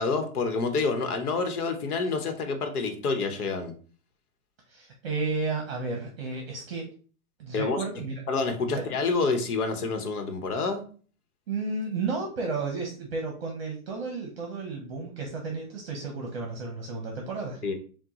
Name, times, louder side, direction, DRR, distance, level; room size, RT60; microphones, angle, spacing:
voice 1, 0.0-3.7 7.5-7.8 8.3-10.8 17.6-17.7, left 4 dB, 85° left, 6 dB, 1.1 m, -28 dB
voice 2, 4.7-6.9 7.4-8.2 8.7-8.9 11.5-17.7, right 3 dB, 45° right, 1 dB, 0.7 m, -32 dB
6.0 x 2.3 x 3.0 m, 0.41 s
hypercardioid pair, 180°, 44 cm